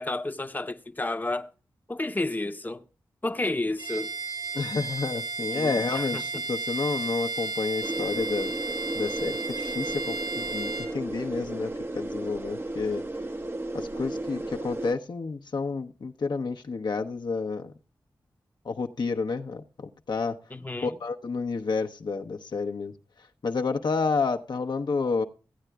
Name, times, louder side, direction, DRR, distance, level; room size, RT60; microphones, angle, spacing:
voice 1, 0.0-1.5 1.9-2.8 3.2-4.1 5.5-6.2 20.5-20.9, left 2 dB, 20° left, 0.8 m, -31 dB
Bowed string instrument, 3.8-11.0, right 3 dB, 85° right, 4.7 m, -33 dB
voice 2, 4.5-8.5 8.9-13.0 13.7-17.7 18.6-20.4 20.8-22.9 23.4-25.2, left 4 dB, 60° left, 0.7 m, -30 dB
sound 1, 7.8-14.9, right 2 dB, 30° right, 0.7 m, -34 dB
16.0 x 8.9 x 2.3 m
cardioid pair, 40°, 8 cm